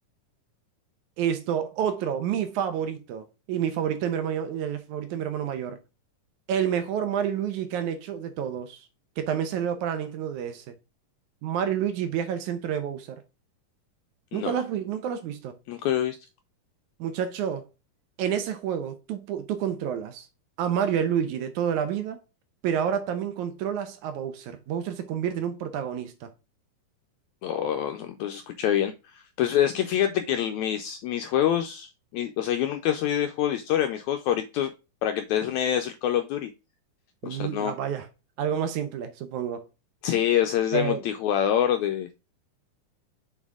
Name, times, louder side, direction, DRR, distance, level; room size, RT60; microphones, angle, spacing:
voice 1, 1.2-5.8 6.5-8.9 9.2-10.7 11.4-13.2 14.3-15.6 17.0-17.7 18.2-20.3 20.6-22.2 22.6-26.3 37.2-38.1 38.4-39.6 40.7-41.0, right 8 dB, 75° right, 2.0 m, -29 dB
voice 2, 15.7-16.2 27.4-34.7 35.0-36.5 37.2-37.7 40.0-42.1, left 10 dB, 90° left, 1.6 m, -26 dB
7.2 x 4.1 x 3.6 m
omnidirectional pair, 3.9 m